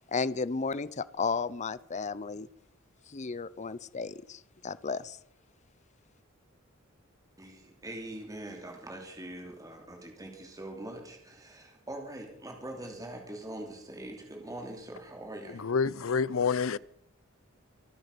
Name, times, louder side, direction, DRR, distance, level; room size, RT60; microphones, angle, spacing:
voice 1, 0.1-2.5 3.1-5.2, left 4 dB, 35° left, 0.6 m, -33 dB
voice 2, 7.4-15.6, right 1 dB, 15° right, 2.9 m, -43 dB
voice 3, 15.5-16.8, left 5 dB, 75° left, 0.6 m, -28 dB
25.0 x 9.8 x 5.3 m
head